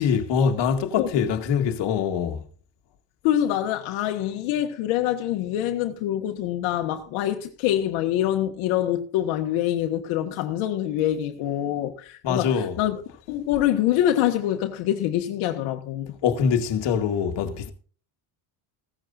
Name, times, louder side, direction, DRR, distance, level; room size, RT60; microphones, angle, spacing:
voice 1, 0.0-2.4 12.2-12.8 16.2-17.7, left 7 dB, 60° left, 2.0 m, -23 dB
voice 2, 3.2-13.0 13.3-16.2, left 12 dB, 85° left, 1.7 m, -25 dB
16.5 x 14.0 x 2.6 m
cardioid pair, 115°, 47 cm